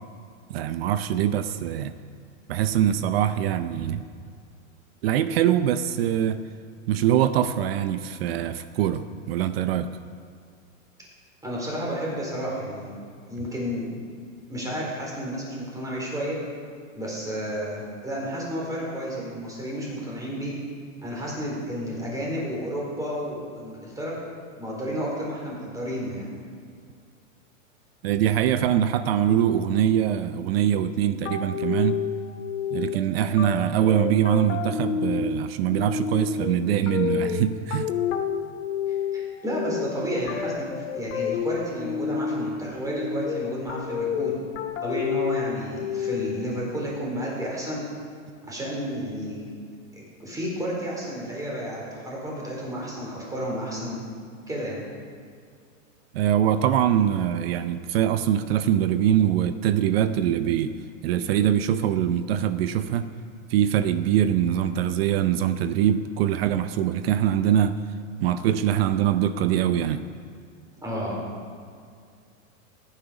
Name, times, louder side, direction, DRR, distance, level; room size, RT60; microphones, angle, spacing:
voice 1, 0.5-1.9 2.5-4.0 5.0-6.4 6.9-9.9 28.0-32.0 32.7-37.9 56.1-60.8 61.0-63.1 63.5-67.8 68.2-70.0, right 10 dB, 50° right, 11 dB, 0.7 m, -23 dB
voice 2, 11.4-13.0 13.3-13.8 14.5-16.4 16.9-20.6 21.0-24.2 24.6-26.3 38.9-44.4 44.8-47.9 48.5-49.5 50.0-54.0 54.5-54.8 70.8-71.2, equal, 10° right, -4 dB, 4.0 m, -31 dB
sound 1, 31.2-46.6, left 8 dB, 70° left, 1.8 m, -30 dB
18.0 x 9.9 x 5.1 m, 2.2 s
hypercardioid pair, 145°, 40 cm